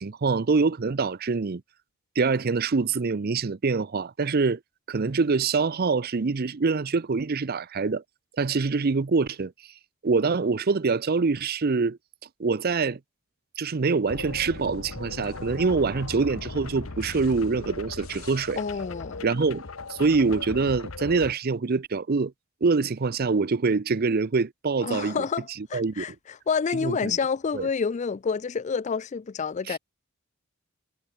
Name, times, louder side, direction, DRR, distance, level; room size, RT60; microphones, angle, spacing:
voice 1, 0.0-1.6 2.2-4.6 4.9-8.0 8.4-9.5 10.0-12.0 12.4-13.0 13.6-18.6 19.2-19.6 19.9-22.3 22.6-25.2 25.6-26.0 26.8-27.2 27.5-27.7 29.7-29.8, right 4 dB, 45° right, 0.6 m, -25 dB
sound 1, 14.1-21.3, left 3 dB, 75° left, 1.3 m, -38 dB
voice 2, 18.6-19.2 24.8-29.8, left 5 dB, 35° left, 0.4 m, -29 dB
head